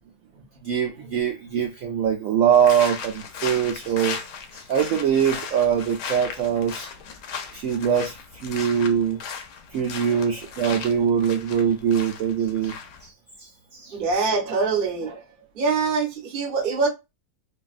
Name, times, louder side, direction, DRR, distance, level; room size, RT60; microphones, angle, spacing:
voice 1, 0.6-4.2 4.5-6.9 7.5-9.2 9.7-12.7 13.0-13.1 13.4-13.9, right 8 dB, 70° right, 0.9 m, -23 dB
sound 1, 2.5-13.1, left 6 dB, 80° left, 1.2 m, -37 dB
voice 2, 13.9-15.2 15.5-16.9, right 4 dB, 40° right, 0.9 m, -24 dB
3.2 x 2.3 x 2.4 m
omnidirectional pair, 1.7 m